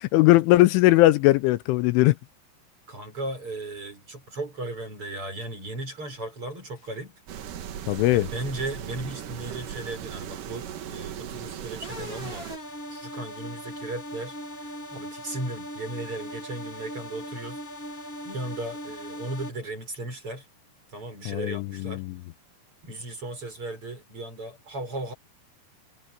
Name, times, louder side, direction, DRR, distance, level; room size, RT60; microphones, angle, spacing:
voice 1, 0.1-2.2 7.9-8.3 21.3-22.1, left 18 dB, 85° left, 3.1 m, -19 dB
voice 2, 2.9-7.1 8.1-12.5 12.9-14.4 14.6-20.5 20.9-22.0 22.8-25.1, right 2 dB, 25° right, 7.7 m, -36 dB
sound 1, 7.3-12.6, right 9 dB, 65° right, 2.3 m, -38 dB
sound 2, 11.8-19.5, equal, 40° left, 1.2 m, -39 dB
omnidirectional pair, 5.7 m